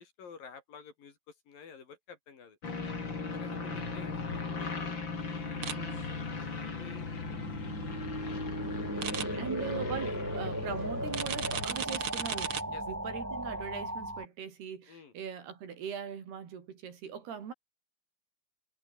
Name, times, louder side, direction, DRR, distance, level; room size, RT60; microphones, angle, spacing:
voice 1, 0.0-2.6 3.2-4.8 5.3-5.6 6.0-8.5 8.9-9.8 10.1-10.4 12.7-12.8 14.9-15.1, left 6 dB, 55° left, 5.1 m, -52 dB
sound 1, 2.6-11.7, left 4 dB, 30° left, 3.8 m, -38 dB
voice 2, 3.5-3.9 5.7-6.1 9.4-17.5, right 7 dB, 70° right, 5.4 m, -41 dB
sound 2, 5.6-14.3, right 1 dB, 5° right, 2.3 m, -38 dB
sound 3, 5.6-5.7 9.0-9.2 11.1-12.6, right 7 dB, 45° right, 2.0 m, -34 dB
omnidirectional pair, 4.8 m